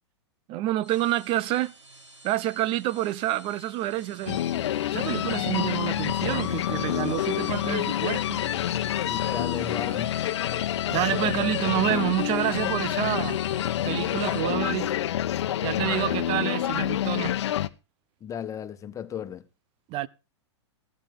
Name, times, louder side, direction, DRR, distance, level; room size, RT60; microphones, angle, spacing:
voice 1, 0.5-1.7 2.2-4.4 4.9-8.4 10.9-13.4 13.9-14.9 15.6-17.4 19.9-20.1, right 14 dB, 35° right, 0.9 m, -28 dB
sound 1, 0.7-14.4, right 1 dB, 80° right, 3.8 m, -49 dB
sound 2, 4.3-17.7, left 11 dB, 70° left, 1.1 m, -27 dB
voice 2, 9.0-10.2 18.2-19.4, left 8 dB, 20° left, 1.6 m, -35 dB
14.5 x 13.5 x 3.9 m
hypercardioid pair, 120°, 15 cm